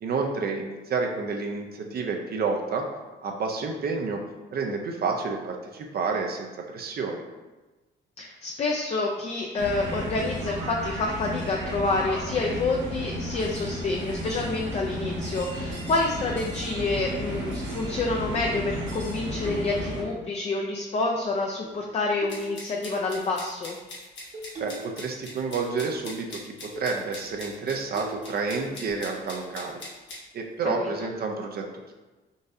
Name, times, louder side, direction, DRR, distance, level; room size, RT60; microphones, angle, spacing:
voice 1, 0.0-2.9 3.2-4.2 4.5-7.2 24.6-29.8 30.3-31.9, right 4 dB, 50° right, 2 dB, 0.5 m, -30 dB
voice 2, 8.2-23.8 30.6-30.9, left 3 dB, 35° left, 0 dB, 0.4 m, -28 dB
sound 1, 9.6-20.0, equal, 70° right, 0.8 m, -33 dB
sound 2, 17.0-17.1 17.7-17.9 18.3-18.4 18.7-19.1 19.4-20.2 21.2-21.8 22.2-22.5 23.1-23.3 24.3-24.9 25.2-25.9 26.3-26.4 26.7-26.9 27.3-27.4 27.9-28.3 28.5-29.0, equal, 35° right, 0.9 m, -41 dB
sound 3, 22.3-30.2, left 2 dB, 65° left, 1.2 m, -42 dB
3.9 x 2.5 x 2.6 m, 1.2 s
cardioid pair, 90°, 20 cm